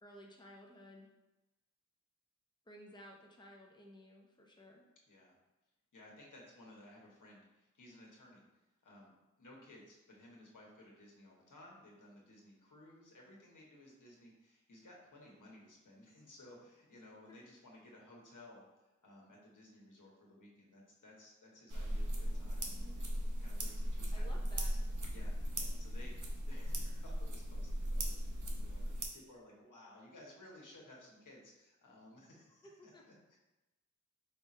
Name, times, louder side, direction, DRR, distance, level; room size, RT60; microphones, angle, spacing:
voice 1, 0.0-1.1 2.7-4.8 24.1-24.7 32.6-33.0, equal, 15° left, -1 dB, 0.7 m, -55 dB
voice 2, 5.9-8.5 8.8-9.1 9.4-23.1 23.4-33.4, left 1 dB, 85° left, -3 dB, 1.2 m, -58 dB
sound 1, 21.7-29.0, equal, 75° right, 0.8 m, -37 dB
5.1 x 2.5 x 4.1 m, 1.0 s
wide cardioid pair, 80°, 30 cm